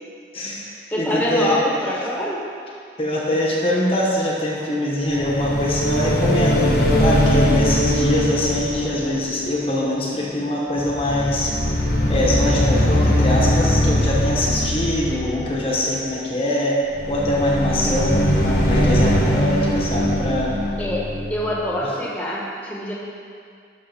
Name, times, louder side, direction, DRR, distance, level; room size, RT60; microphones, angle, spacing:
voice 1, 0.3-1.6 3.0-11.6 12.1-16.8 17.1-20.6 21.8-21.9, left 1 dB, 30° left, -4 dB, 1.1 m, -23 dB
voice 2, 0.9-2.4 17.8-18.0 20.8-22.9, equal, 10° left, -4 dB, 1.3 m, -25 dB
sound 1, 5.1-10.5 10.7-16.0 16.9-21.8, left 1 dB, 60° left, 1.3 m, -21 dB
12.0 x 6.2 x 4.3 m, 2.3 s
head